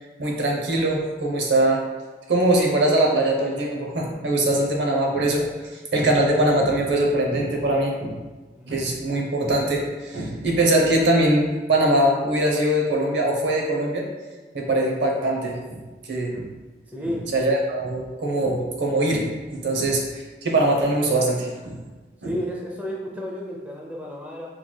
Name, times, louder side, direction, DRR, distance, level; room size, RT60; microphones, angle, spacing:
voice 1, 0.2-1.8 2.3-5.5 5.9-8.2 8.7-14.1 14.5-15.8 16.1-16.5 17.0-21.8 22.2-22.3, right 1 dB, 90° right, 0 dB, 0.8 m, -22 dB
voice 2, 8.6-9.0 16.9-17.3 22.2-24.5, equal, 10° right, -2 dB, 0.5 m, -32 dB
4.5 x 3.9 x 2.2 m, 1.3 s
head